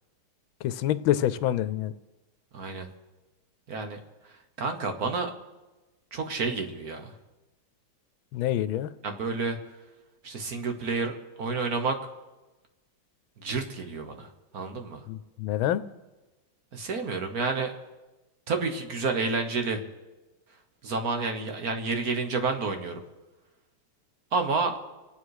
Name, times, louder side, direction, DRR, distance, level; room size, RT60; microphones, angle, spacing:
voice 1, 0.6-1.9 8.3-8.9 15.1-15.8, left 12 dB, 80° left, 14 dB, 1.4 m, -26 dB
voice 2, 2.5-2.9 3.7-4.0 4.3-5.3 6.1-7.1 9.0-9.6 10.2-12.0 13.4-15.1 16.7-17.7 18.5-19.8 20.8-23.0 24.3-24.8, right 4 dB, 50° right, 6 dB, 1.5 m, -30 dB
26.0 x 8.9 x 4.8 m, 1.1 s
omnidirectional pair, 2.2 m